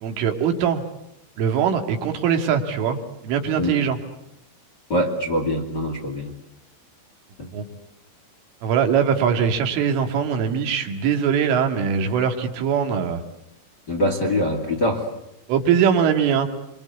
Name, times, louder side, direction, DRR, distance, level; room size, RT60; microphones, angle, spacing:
voice 1, 0.0-0.8 1.4-3.0 3.2-4.0 7.5-7.6 8.6-13.2 15.5-16.5, right 7 dB, 80° right, 5 dB, 4.6 m, -21 dB
voice 2, 4.9-6.3 7.4-7.5 13.9-15.1, left 1 dB, 30° left, 1 dB, 2.2 m, -23 dB
26.5 x 25.0 x 8.3 m, 0.83 s
omnidirectional pair, 5.7 m